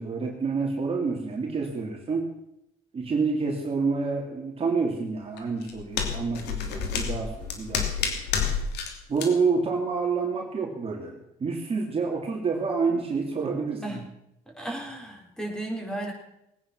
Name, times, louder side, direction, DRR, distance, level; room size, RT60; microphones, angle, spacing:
voice 1, 0.0-2.3 2.9-8.1 9.1-14.0, right 4 dB, 35° right, 0 dB, 2.8 m, -28 dB
sound 1, 5.4-8.9 9.2-9.3, left 6 dB, 85° left, 2.9 m, -29 dB
voice 2, 14.6-16.1, right 1 dB, 5° left, 0 dB, 4.6 m, -34 dB
20.0 x 9.7 x 6.1 m, 0.83 s
cardioid pair, 110°, 17 cm